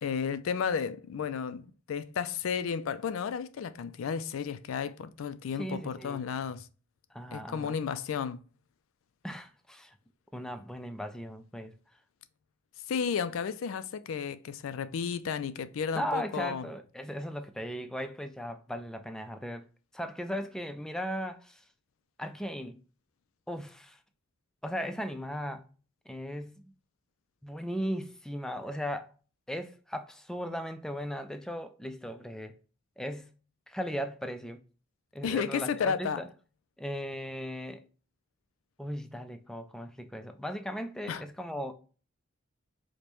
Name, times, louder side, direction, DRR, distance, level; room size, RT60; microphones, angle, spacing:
voice 1, 0.0-6.7 7.3-8.4 12.9-16.6 35.2-36.2 41.1-41.2, left 6 dB, 85° left, 0.4 m, -33 dB
voice 2, 5.6-6.2 7.1-7.8 9.2-9.9 10.3-11.7 15.9-19.7 19.9-21.6 22.2-22.8 23.5-24.0 24.6-25.6 26.1-26.7 27.4-29.1 29.5-32.6 33.0-33.3 33.7-34.6 35.1-36.3 36.8-37.8 38.8-41.7, equal, 5° left, 0.3 m, -37 dB
4.9 x 2.1 x 2.9 m
head